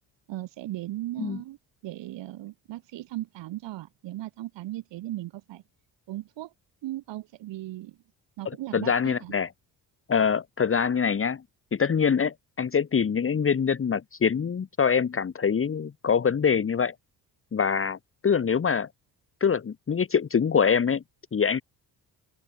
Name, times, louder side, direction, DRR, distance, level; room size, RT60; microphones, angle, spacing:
voice 1, 0.3-1.6 1.8-5.6 6.1-6.5 6.8-8.0 8.4-9.3, right 15 dB, 85° right, 4.2 m, -37 dB
voice 2, 8.7-9.5 10.1-11.4 11.7-16.9 17.5-18.0 18.2-18.9 19.4-21.0 21.3-21.6, left 6 dB, 30° left, 1.4 m, -24 dB
open air
cardioid pair, 105°, 42 cm